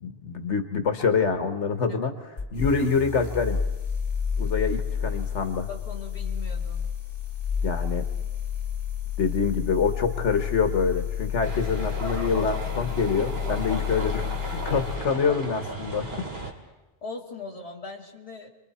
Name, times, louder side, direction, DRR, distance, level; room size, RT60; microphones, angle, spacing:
voice 1, 0.0-2.1 2.5-3.6 4.4-5.7 7.6-8.0 9.2-16.1, left 5 dB, 85° left, 7 dB, 1.6 m, -26 dB
sound 1, 2.4-15.0, left 7 dB, 55° left, 2.2 m, -30 dB
voice 2, 5.7-6.9 17.0-18.5, left 3 dB, 30° left, 0 dB, 2.3 m, -39 dB
sound 2, 11.4-16.5, right 2 dB, 60° right, 2.5 m, -35 dB
29.5 x 22.5 x 4.3 m, 1.1 s
omnidirectional pair, 1.2 m